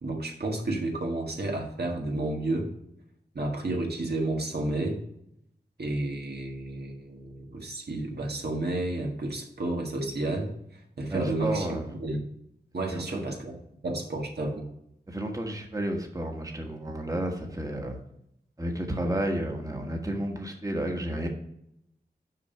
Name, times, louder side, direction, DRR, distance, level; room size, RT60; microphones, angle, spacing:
voice 1, 0.0-2.7 3.3-5.0 5.8-12.2 12.7-13.6 13.8-14.7, right 2 dB, 70° right, 1 dB, 1.6 m, -31 dB
voice 2, 11.1-11.9 12.9-13.2 15.1-18.0 18.6-21.3, right 1 dB, 20° right, 2 dB, 1.4 m, -31 dB
6.6 x 5.3 x 5.6 m, 0.76 s
wide cardioid pair, 60°, 17 cm